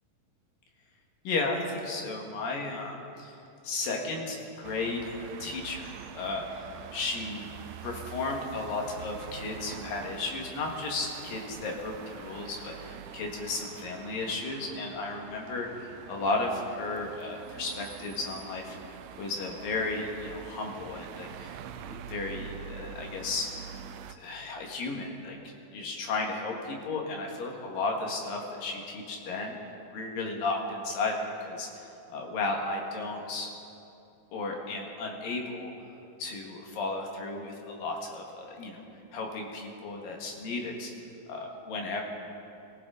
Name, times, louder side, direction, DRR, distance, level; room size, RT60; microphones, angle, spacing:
voice 1, 1.3-3.4 3.6-6.4 6.9-7.5 7.8-21.6 21.9-23.5 24.2-25.4 25.7-29.6 29.9-33.5 34.3-35.7 36.2-38.8 39.1-40.9 41.3-42.0, left 3 dB, 70° left, 1 dB, 3.4 m, -34 dB
sound 1, 4.6-24.1, right 8 dB, 85° right, 1.8 m, -45 dB
23.5 x 15.5 x 3.9 m, 2.8 s
omnidirectional pair, 4.3 m